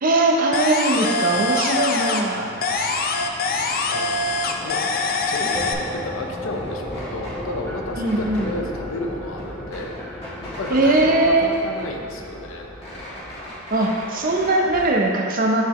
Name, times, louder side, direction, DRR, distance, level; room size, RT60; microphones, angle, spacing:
voice 1, 0.0-2.5 8.0-8.5 10.7-11.5 13.7-15.7, right 2 dB, 45° right, 1 dB, 0.7 m, -20 dB
sound 1, 0.5-2.3 2.6-5.7, left 3 dB, 50° left, 0.4 m, -24 dB
voice 2, 1.2-1.8 2.4-2.7 3.7-4.2 4.5-4.8 5.3-10.0 10.4-12.7, left 2 dB, 85° left, 2 dB, 0.6 m, -32 dB
sound 2, 2.1-13.4, equal, 10° left, 1.1 m, -35 dB
sound 3, 4.2-6.0 6.3-7.4 8.0-8.5 8.9-9.0 9.2-11.1 11.4-12.3 12.6-15.0, left 1 dB, 30° left, 1.6 m, -38 dB
9.2 x 3.9 x 3.1 m, 2.2 s
head